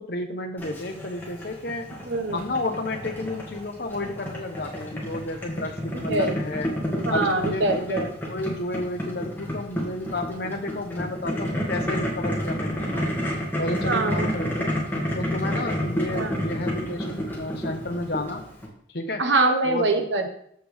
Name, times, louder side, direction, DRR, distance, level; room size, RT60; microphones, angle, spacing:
voice 1, 0.0-1.9 2.3-6.7 7.1-13.1 13.6-14.7 15.2-18.4 18.9-19.2 19.6-19.9, left 2 dB, 60° left, 4 dB, 0.9 m, -31 dB
Boiling, 0.6-18.7, equal, 10° left, 2.2 m, -30 dB
voice 2, 2.0-2.4 6.1-6.4 7.0-8.1 13.9-14.3 16.1-16.4 19.2-20.3, right 3 dB, 90° right, 4 dB, 1.4 m, -24 dB
14.5 x 6.3 x 3.5 m, 0.68 s
head